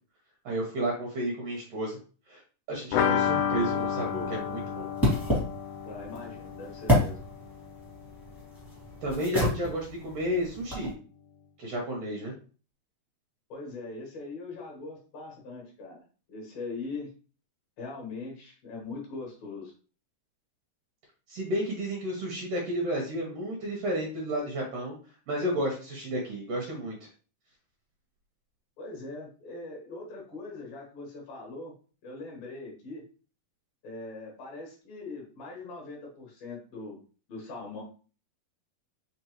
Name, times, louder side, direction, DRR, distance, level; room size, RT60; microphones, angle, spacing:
voice 1, 0.4-2.0 2.3-2.4 2.7-4.9 9.0-10.9 11.6-12.3 21.3-24.9 25.3-27.0, equal, 75° right, -1 dB, 1.4 m, -32 dB
sound 1, 2.9-8.5 8.8-8.9 9.2-9.3, left 8 dB, 85° left, 2.4 m, -31 dB
sound 2, 3.2-10.9, left 1 dB, ahead, 0.8 m, -31 dB
voice 2, 5.8-7.2 13.5-16.0 16.3-17.1 17.8-19.7 28.8-31.8 32.0-33.1 33.8-37.0 37.3-37.8, left 3 dB, 55° left, -2 dB, 1.9 m, -41 dB
5.1 x 3.2 x 3.0 m, 0.38 s
omnidirectional pair, 4.2 m